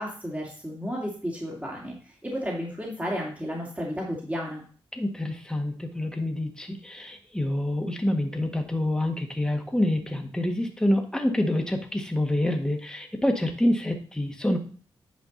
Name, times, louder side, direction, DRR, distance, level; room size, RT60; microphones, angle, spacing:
voice 1, 0.0-4.6, equal, 15° right, -2 dB, 2.5 m, -33 dB
voice 2, 4.9-14.6, left 1 dB, 5° left, 3 dB, 1.7 m, -27 dB
9.2 x 5.2 x 4.1 m, 0.42 s
cardioid pair, 65°, 10 cm